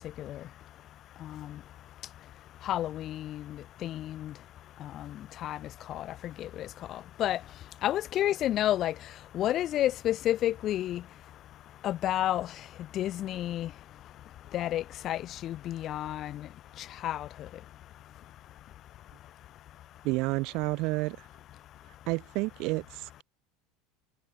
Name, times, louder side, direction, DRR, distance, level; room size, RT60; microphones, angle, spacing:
voice 1, 1.2-1.6 2.6-4.3 4.8-5.6 5.9-7.4 7.8-8.9 9.3-11.0 11.8-12.5 12.9-13.7 14.5-16.5 17.0-17.3, left 12 dB, 45° left, 1.1 m, -31 dB
voice 2, 20.0-21.2 22.1-23.2, right 24 dB, 60° right, 0.7 m, -30 dB
supercardioid pair, 125°, 0 cm